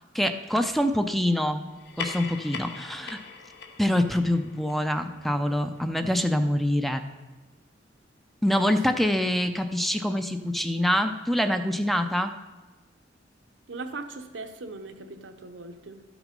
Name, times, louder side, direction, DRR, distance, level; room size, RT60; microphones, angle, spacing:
voice 1, 0.1-1.7 2.0-3.2 3.8-7.0 8.4-12.3, left 1 dB, ahead, 8 dB, 0.4 m, -25 dB
sound 1, 1.7-6.6, left 5 dB, 65° left, 0.8 m, -41 dB
voice 2, 13.7-16.0, right 3 dB, 85° right, 6 dB, 0.9 m, -39 dB
12.0 x 6.1 x 5.2 m, 1.2 s
head